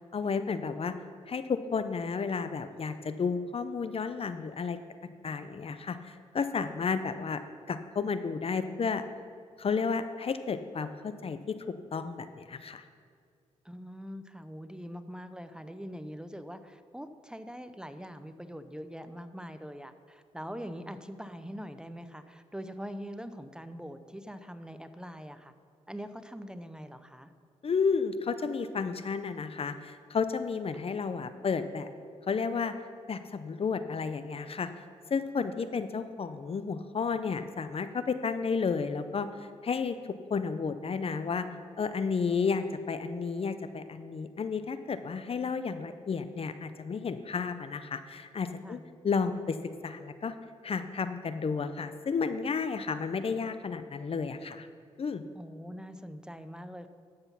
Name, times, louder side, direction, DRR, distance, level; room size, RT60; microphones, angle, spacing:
voice 1, 0.1-1.0 1.3-4.8 5.2-7.4 7.7-9.0 9.6-12.8 27.6-31.9 32.3-32.7 33.1-34.7 35.1-39.3 39.6-40.0 40.3-41.5 41.8-48.8 49.0-49.6 49.8-50.3 50.6-54.7 55.0-55.2, left 5 dB, 45° left, 11 dB, 0.6 m, -32 dB
voice 2, 13.6-25.5 25.9-27.3 48.6-48.9 55.3-56.9, equal, 5° right, 10 dB, 0.6 m, -43 dB
11.0 x 8.0 x 5.6 m, 2.2 s
cardioid pair, 65°, 14 cm